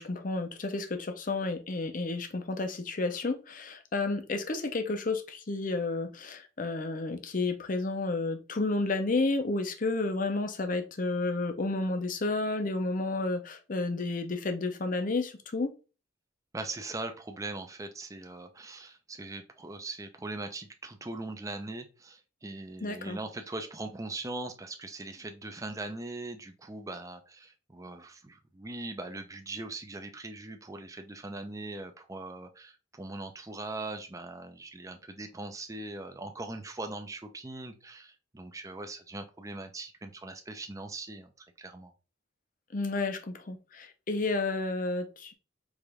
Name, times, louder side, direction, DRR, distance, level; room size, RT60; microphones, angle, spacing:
voice 1, 0.0-15.7 22.8-23.2 42.7-45.3, left 3 dB, 45° left, 0.6 m, -31 dB
voice 2, 16.5-41.3 41.6-41.9, right 2 dB, 15° right, 0.5 m, -40 dB
4.8 x 2.6 x 3.4 m
head